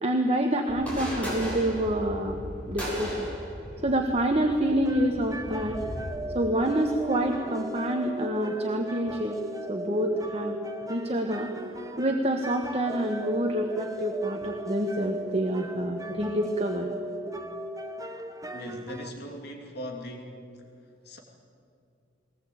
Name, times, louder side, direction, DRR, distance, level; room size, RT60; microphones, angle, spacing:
voice 1, 0.0-2.4 2.7-3.3 3.8-5.8 6.3-9.4 9.7-10.6 10.8-11.5 12.0-16.9, right 1 dB, 35° right, 3 dB, 1.5 m, -27 dB
sound 1, 0.7-6.0, equal, 10° left, 7.8 m, -37 dB
sound 2, 4.8-19.1, right 1 dB, 20° right, 1.1 m, -37 dB
voice 2, 18.5-20.4 21.0-21.2, equal, 60° left, 2 dB, 2.8 m, -39 dB
21.5 x 19.5 x 8.7 m, 2.4 s
head